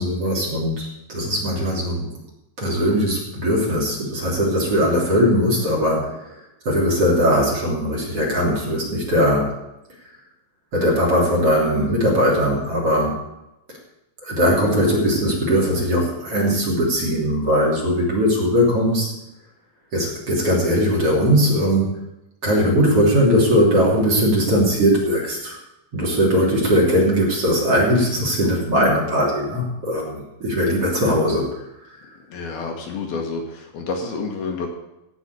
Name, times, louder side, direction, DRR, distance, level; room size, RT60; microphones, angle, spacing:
voice 1, 0.0-2.1 2.6-6.4 6.7-9.5 10.7-13.2 14.2-19.1 19.9-22.0 22.4-25.6 25.9-31.5, equal, 35° right, -1 dB, 3.7 m, -19 dB
voice 2, 32.3-34.7, left 4 dB, 65° left, 1 dB, 3.1 m, -29 dB
16.5 x 6.2 x 8.3 m, 0.90 s
omnidirectional pair, 5.1 m